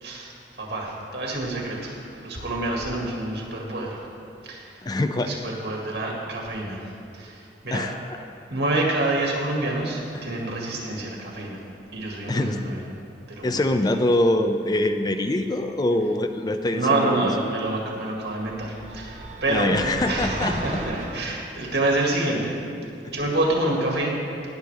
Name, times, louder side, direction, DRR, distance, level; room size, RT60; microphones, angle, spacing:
voice 1, 0.0-4.0 4.4-4.8 5.3-7.9 8.5-11.6 11.9-12.8 13.3-13.6 16.7-19.8 20.1-22.5 23.1-24.1, right 2 dB, 75° right, -2 dB, 2.1 m, -27 dB
voice 2, 4.8-5.3 7.7-8.2 10.1-10.2 12.3-12.6 13.4-17.3 19.5-20.5 23.0-23.1, left 1 dB, 25° left, 7 dB, 0.4 m, -24 dB
sound 1, 18.3-21.2, right 1 dB, 45° right, 1.1 m, -34 dB
19.0 x 6.5 x 3.4 m, 2.6 s
head